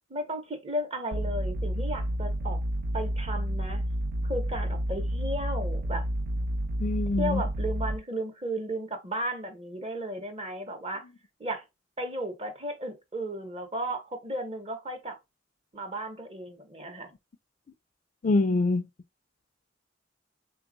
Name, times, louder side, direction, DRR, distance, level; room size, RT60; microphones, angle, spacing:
voice 1, 0.1-2.6 2.9-3.8 4.2-6.1 7.2-11.0 11.4-11.6 12.0-15.2 15.7-17.1, right 1 dB, 30° right, 0.8 m, -34 dB
sound 1, 1.1-8.0, right 1 dB, 55° right, 0.4 m, -30 dB
voice 2, 6.8-7.4 18.2-18.9, left 2 dB, 40° left, 0.3 m, -25 dB
3.3 x 2.3 x 3.8 m
head